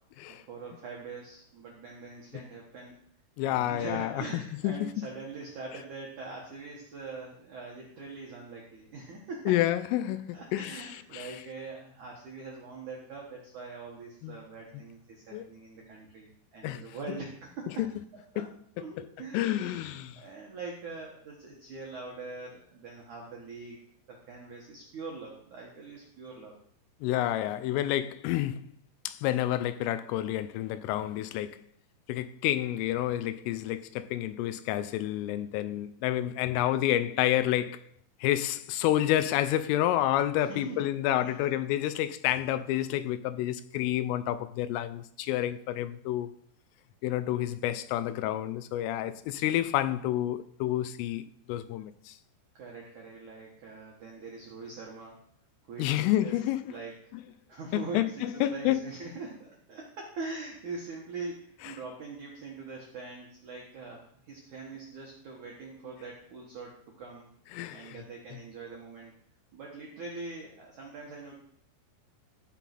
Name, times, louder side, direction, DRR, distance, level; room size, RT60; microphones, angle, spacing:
voice 1, 0.5-3.0 3.4-9.5 10.3-17.7 18.1-18.4 18.8-23.8 24.1-26.6 40.4-40.8 41.2-41.3 52.5-55.2 55.7-56.4 56.7-56.9 57.5-66.7 67.0-67.3 67.7-69.1 69.5-71.4, right 3 dB, 75° right, 1.8 m, -43 dB
voice 2, 3.4-4.2 4.6-5.0 9.5-11.4 14.2-14.4 14.7-14.8 15.3-15.5 16.6-16.8 17.8-17.9 18.4-18.5 19.3-20.2 27.0-28.6 29.1-31.6 32.1-37.8 38.2-46.3 47.0-51.2 51.5-52.2 55.8-56.6 57.7-58.8 67.5-68.0, left 13 dB, 85° left, 3.0 m, -29 dB
14.5 x 5.4 x 6.0 m
omnidirectional pair, 5.9 m